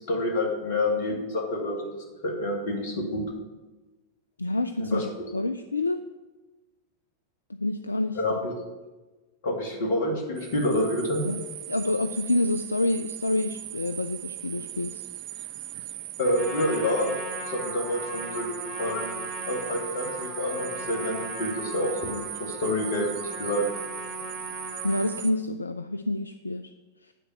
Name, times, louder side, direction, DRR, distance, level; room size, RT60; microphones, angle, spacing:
voice 1, 0.1-1.9 2.2-3.2 4.8-5.1 8.1-8.5 9.4-11.2 16.2-17.1 17.4-19.1 19.5-23.1 23.4-23.7, left 1 dB, 55° left, 1 dB, 2.3 m, -28 dB
voice 2, 4.4-5.0 5.3-6.0 7.6-8.4 11.2-11.4 11.7-15.0 24.8-26.7, left 2 dB, 80° left, 10 dB, 0.3 m, -27 dB
sound 1, 10.4-25.3, right 13 dB, 45° right, 0.5 m, -38 dB
Trumpet, 16.2-25.2, equal, 20° left, 3.2 m, -38 dB
9.1 x 4.5 x 7.6 m, 1.2 s
figure-of-eight pair, 90°, 0 cm